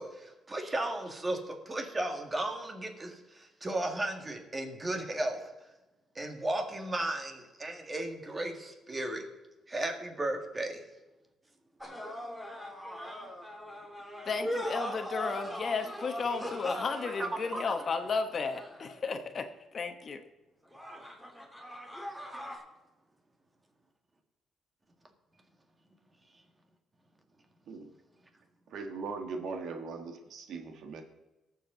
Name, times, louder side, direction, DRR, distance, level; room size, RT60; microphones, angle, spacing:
voice 1, 0.0-5.4 6.2-9.2 9.7-10.8 17.2-17.6 22.5-22.6, right 1 dB, 20° right, 4 dB, 1.9 m, -35 dB
sound 1, 11.8-19.1 20.7-22.6, equal, 5° right, 2.4 m, -40 dB
voice 2, 14.2-19.4 19.7-20.2, left 4 dB, 40° left, 7 dB, 1.1 m, -33 dB
voice 3, 28.7-31.0, right 4 dB, 70° right, 5 dB, 1.6 m, -39 dB
18.5 x 7.4 x 3.9 m, 1.0 s
cardioid pair, 125°, 0 cm